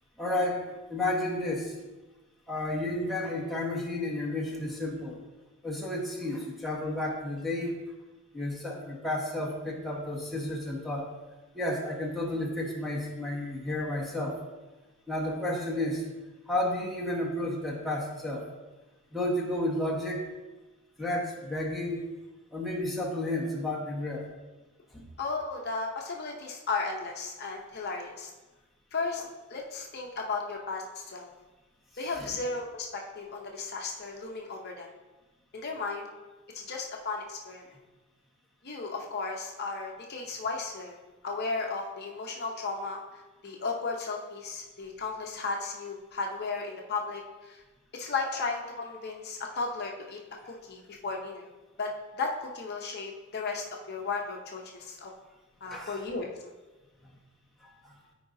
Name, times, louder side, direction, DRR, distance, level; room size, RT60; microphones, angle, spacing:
voice 1, 0.2-0.6 0.9-1.8 2.5-5.2 5.6-7.8 8.3-11.1 11.5-14.4 15.1-16.0 16.5-18.4 19.1-20.2 21.0-22.0 22.5-24.3 24.9-25.1 32.0-32.4 55.7-56.0 57.6-57.9, left 1 dB, ahead, -3 dB, 1.2 m, -32 dB
voice 2, 25.2-28.3 28.9-29.2 29.5-31.3 32.0-34.9 35.5-36.1 36.5-37.6 38.6-41.0 41.2-43.0 43.4-47.6 47.9-50.2 50.5-51.5 51.8-55.1 55.6-56.4, left 4 dB, 50° left, 0 dB, 0.8 m, -35 dB
13.5 x 4.8 x 2.7 m, 1.2 s
head